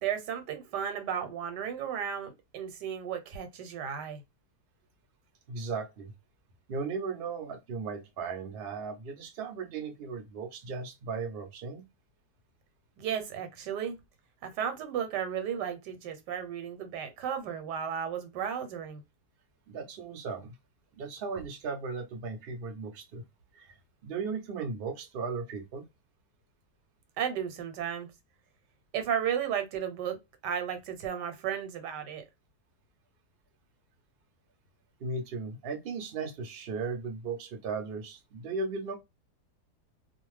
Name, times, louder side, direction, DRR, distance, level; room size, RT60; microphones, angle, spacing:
voice 1, 0.0-4.2 13.0-14.0 14.4-19.0 27.2-28.1 28.9-30.2 30.4-32.3, right 8 dB, 85° right, 1.3 m, -34 dB
voice 2, 5.5-6.1 6.7-11.8 19.7-20.5 20.9-23.2 23.5-23.8 24.0-25.8 35.0-39.0, right 4 dB, 55° right, 0.7 m, -36 dB
2.5 x 2.3 x 3.1 m
omnidirectional pair, 1.8 m